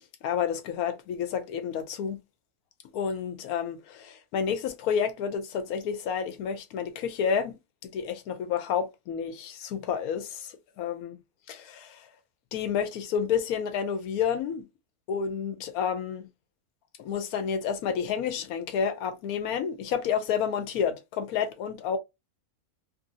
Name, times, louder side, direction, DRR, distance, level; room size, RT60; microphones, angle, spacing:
voice 1, 0.2-2.2 2.9-7.6 7.9-11.2 11.5-12.1 12.5-14.6 15.1-16.3 17.0-22.0, left 7 dB, 85° left, 1.1 m, -30 dB
2.9 x 2.7 x 2.5 m
omnidirectional pair, 1.5 m